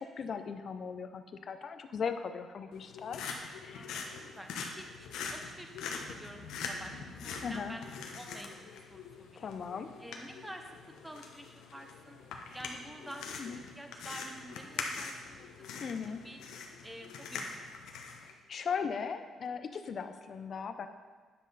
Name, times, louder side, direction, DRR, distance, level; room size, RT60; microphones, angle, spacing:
voice 1, 0.0-3.2 3.6-4.0 7.4-7.8 9.4-9.9 13.4-13.6 15.8-16.3 18.2-20.9, left 6 dB, 55° left, 9 dB, 0.7 m, -38 dB
sound 1, 2.7-18.3, left 5 dB, 85° left, 1.1 m, -43 dB
voice 2, 3.7-5.8 6.0-9.5 10.0-10.8 11.0-12.2 12.5-16.4 16.8-17.5, right 1 dB, 5° right, 4 dB, 1.1 m, -49 dB
9.8 x 7.5 x 4.1 m, 1.4 s
cardioid pair, 90°, 0 cm